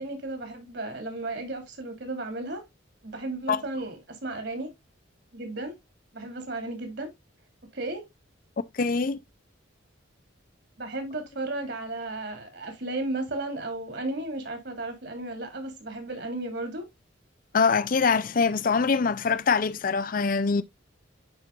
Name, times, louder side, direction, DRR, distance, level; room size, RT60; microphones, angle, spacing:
voice 1, 0.0-2.6 3.0-4.7 5.3-5.7 6.1-7.1 7.7-8.0 10.8-16.8, right 2 dB, 55° right, 2.8 m, -34 dB
voice 2, 8.7-9.2 17.5-20.6, left 5 dB, 45° left, 0.5 m, -24 dB
10.5 x 4.5 x 2.4 m
head